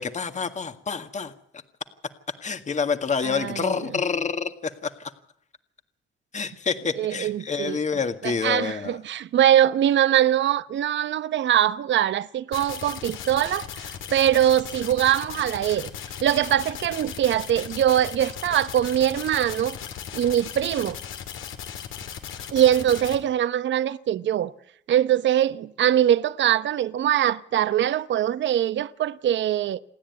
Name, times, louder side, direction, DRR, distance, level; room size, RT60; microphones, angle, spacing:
voice 1, 0.0-1.3 2.4-5.1 6.3-9.0, left 5 dB, 35° left, 1.9 m, -28 dB
voice 2, 3.2-4.0 7.0-7.8 8.2-15.9 16.2-19.8 20.1-21.0 22.5-24.5 24.9-29.8, right 11 dB, 65° right, 0.9 m, -22 dB
sound 1, 12.5-23.2, left 8 dB, 85° left, 3.2 m, -37 dB
28.0 x 10.0 x 9.5 m
cardioid pair, 90°, 20 cm